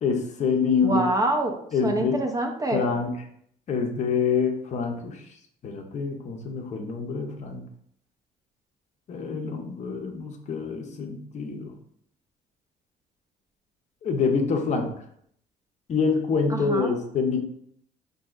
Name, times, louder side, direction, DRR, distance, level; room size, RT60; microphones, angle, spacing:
voice 1, 0.0-1.0 1.7-2.2 2.7-3.1 3.7-5.2 5.6-7.7 9.1-11.7 14.0-14.9 15.9-17.4, left 5 dB, 45° left, 4 dB, 0.6 m, -26 dB
voice 2, 0.8-1.6 1.8-2.9 16.5-16.9, right 2 dB, 20° right, 3 dB, 0.4 m, -26 dB
3.8 x 2.6 x 2.3 m, 0.68 s
cardioid pair, 110°, 17 cm